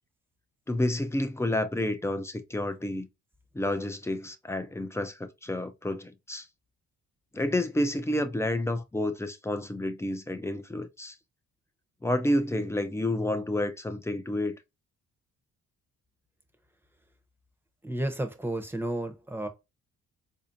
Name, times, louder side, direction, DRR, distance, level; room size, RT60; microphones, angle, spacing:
voice 1, 0.7-3.1 3.5-6.5 7.3-11.2 12.0-14.6, left 1 dB, 10° left, 0.5 m, -30 dB
voice 2, 17.8-19.5, right 1 dB, 5° right, 0.8 m, -32 dB
4.1 x 2.7 x 2.5 m
cardioid pair, 90°, 30 cm